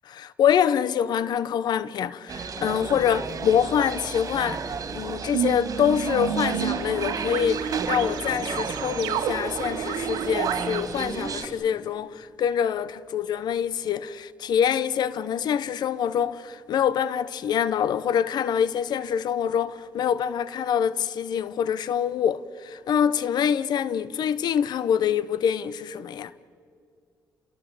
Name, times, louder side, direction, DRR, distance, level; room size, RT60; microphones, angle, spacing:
voice 1, 0.1-4.6 4.9-26.3, left 8 dB, 70° left, 0.8 m, -25 dB
sound 1, 2.3-11.5, right 5 dB, 50° right, 2.7 m, -33 dB
sound 2, 5.3-10.8, right 9 dB, 90° right, 1.2 m, -30 dB
28.0 x 21.5 x 7.6 m
supercardioid pair, 65°, 7 cm